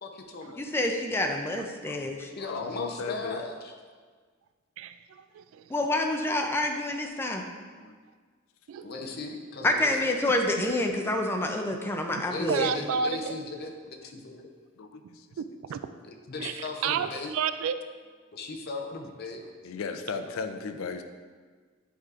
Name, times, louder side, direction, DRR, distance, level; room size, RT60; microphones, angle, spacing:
voice 1, 0.0-0.6 2.4-3.7 8.8-10.1 12.2-14.5 16.0-17.3 18.3-19.4, left 3 dB, 50° left, 2 dB, 0.6 m, -37 dB
voice 2, 0.6-2.3 5.7-7.4 9.6-12.7, left 1 dB, 10° left, 3 dB, 0.4 m, -27 dB
voice 3, 1.8-3.4 7.8-8.0 11.1-11.2 14.8-15.3 19.6-21.0, left 5 dB, 90° left, 7 dB, 0.4 m, -37 dB
voice 4, 4.8-5.6 8.7-8.9 12.5-13.3 15.4-15.8 16.4-17.7, right 7 dB, 85° right, 11 dB, 0.3 m, -31 dB
8.1 x 4.7 x 2.5 m, 1.5 s
head